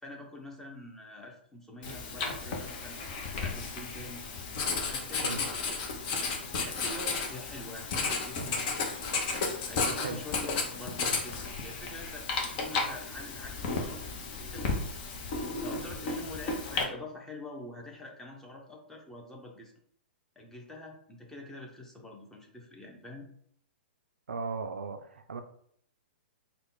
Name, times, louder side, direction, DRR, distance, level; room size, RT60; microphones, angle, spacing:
voice 1, 0.0-4.2 4.9-6.0 6.6-9.2 9.7-12.3 12.6-14.0 14.4-15.0 15.6-19.7 20.4-23.3, left 1 dB, 5° left, 0 dB, 0.8 m, -45 dB
Writing, 1.8-16.8, left 4 dB, 45° left, 0.8 m, -33 dB
voice 2, 24.3-25.4, right 4 dB, 80° right, 7 dB, 0.4 m, -36 dB
3.6 x 2.3 x 3.8 m, 0.65 s
figure-of-eight pair, 115°, 6 cm